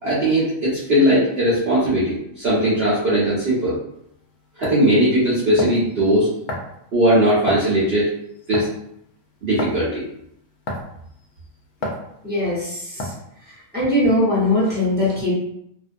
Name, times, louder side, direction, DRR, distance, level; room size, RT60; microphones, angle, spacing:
voice 1, 0.0-3.8 4.6-6.3 6.9-8.1 8.5-8.7 9.4-10.0, right 1 dB, 50° right, -9 dB, 0.9 m, -19 dB
sound 1, 3.9-4.0 4.6-4.8 5.6-5.9 6.5-6.8 7.5-7.7 8.5-8.8 9.6-9.8 10.7-11.0 11.8-12.0 13.0-13.3, left 1 dB, 65° left, 0.7 m, -28 dB
voice 2, 12.2-13.1 13.7-15.3, left 1 dB, 10° right, -9 dB, 0.7 m, -20 dB
2.5 x 2.1 x 2.5 m, 0.74 s
omnidirectional pair, 1.5 m